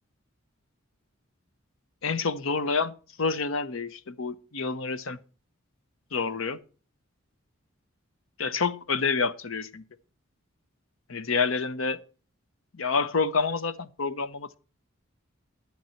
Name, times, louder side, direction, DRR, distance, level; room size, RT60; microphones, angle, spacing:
voice 1, 2.0-5.2 6.1-6.6 8.4-9.8 11.1-12.0 12.7-14.6, left 4 dB, 75° left, 0.8 m, -28 dB
11.5 x 9.3 x 4.4 m
head